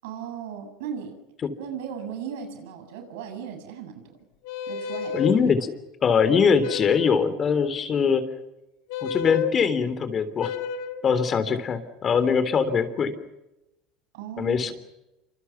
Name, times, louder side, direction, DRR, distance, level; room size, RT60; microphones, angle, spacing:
voice 1, 0.0-1.2 1.6-4.2 4.7-5.4 14.1-14.7, right 8 dB, 90° right, 6 dB, 7.7 m, -37 dB
sound 1, 4.4-5.4 6.6-7.2 8.9-9.5 10.4-11.0, left 7 dB, 75° left, 2.3 m, -30 dB
voice 2, 5.1-5.7 6.0-8.2 9.0-10.5 11.0-13.1 14.4-14.7, left 6 dB, 30° left, 12 dB, 3.4 m, -22 dB
28.5 x 26.0 x 5.9 m, 0.93 s
supercardioid pair, 130°, 0 cm